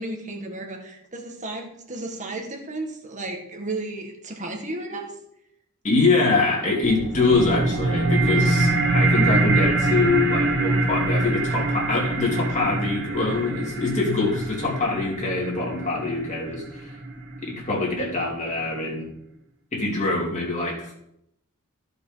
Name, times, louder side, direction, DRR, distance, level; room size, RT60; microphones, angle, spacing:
voice 1, 0.0-5.2 7.0-7.1, right 2 dB, 35° right, 2 dB, 1.7 m, -33 dB
voice 2, 5.8-16.9 17.4-19.1 19.7-21.1, left 3 dB, 35° left, -3 dB, 2.6 m, -24 dB
sound 1, 6.8-17.8, right 2 dB, 50° right, 1.4 m, -24 dB
14.5 x 5.3 x 4.0 m, 0.77 s
head